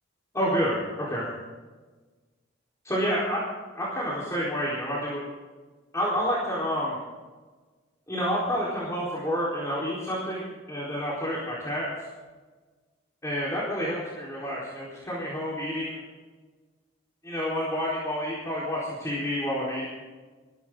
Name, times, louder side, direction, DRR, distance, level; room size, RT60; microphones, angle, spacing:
voice 1, 0.3-1.3 2.8-3.4 3.7-5.2 5.9-7.0 8.1-11.9 13.2-16.0 17.2-19.9, equal, 15° left, -7 dB, 4.2 m, -29 dB
20.5 x 15.5 x 3.9 m, 1.3 s
head